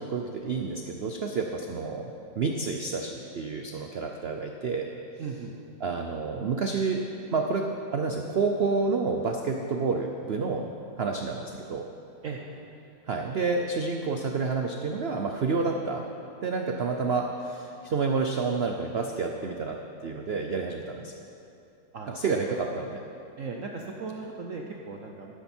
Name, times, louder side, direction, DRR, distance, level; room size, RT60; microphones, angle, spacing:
voice 1, 0.0-4.9 5.8-7.0 7.3-10.7 11.0-11.9 13.1-16.1 16.4-21.1 22.1-23.0, right 4 dB, 90° right, 3 dB, 0.5 m, -29 dB
voice 2, 5.2-5.5 12.2-12.4 21.9-22.3 23.4-25.3, right 4 dB, 55° right, 1 dB, 0.9 m, -37 dB
12.5 x 12.0 x 4.4 m, 2.7 s
omnidirectional pair, 2.0 m